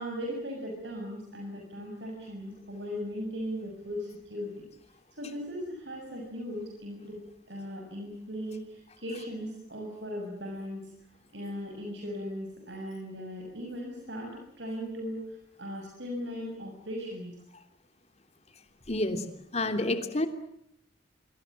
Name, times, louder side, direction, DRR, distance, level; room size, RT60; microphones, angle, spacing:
voice 1, 0.0-4.5 5.2-7.2 7.5-10.8 11.3-15.2 15.6-17.3, equal, 70° right, 1 dB, 6.7 m, -38 dB
voice 2, 18.9-19.2 19.5-20.3, left 2 dB, 35° left, 7 dB, 3.1 m, -28 dB
26.0 x 25.0 x 7.4 m, 0.72 s
head